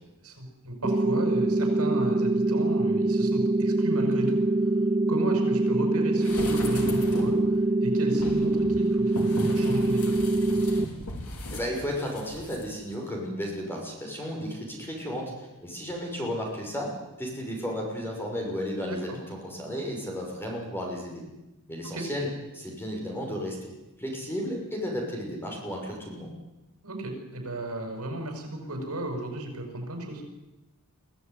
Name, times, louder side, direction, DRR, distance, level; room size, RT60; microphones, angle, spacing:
voice 1, 0.2-4.7 5.1-9.2 9.5-10.2 18.9-19.2 21.8-22.1 26.8-30.2, right 1 dB, 75° right, 4 dB, 6.4 m, -34 dB
sound 1, 0.8-10.9, right 2 dB, 30° right, 0.7 m, -24 dB
sound 2, 6.2-7.5 8.1-12.6 12.9-13.0, left 1 dB, 75° left, 4.1 m, -36 dB
voice 2, 11.5-16.9 17.2-21.2 21.7-22.3 22.5-23.6 24.0-26.3, equal, 10° left, 0 dB, 6.2 m, -33 dB
23.5 x 15.5 x 9.5 m, 1.0 s
head